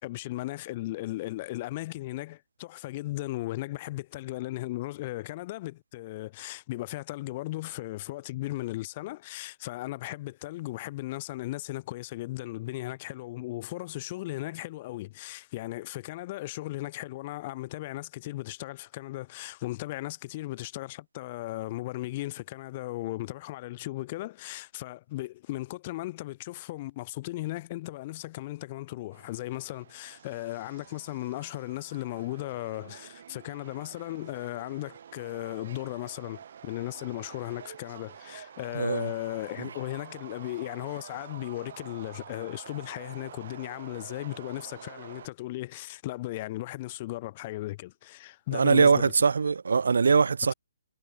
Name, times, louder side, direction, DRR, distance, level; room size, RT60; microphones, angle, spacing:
voice 1, 0.0-49.1, left 18 dB, 25° left, 1.6 m, -36 dB
Subway metro underground, 29.1-45.3, right 8 dB, 50° right, 3.0 m, -48 dB
voice 2, 38.7-39.1 48.5-50.5, right 5 dB, 85° right, 1.3 m, -22 dB
hypercardioid pair, 170°, 0 cm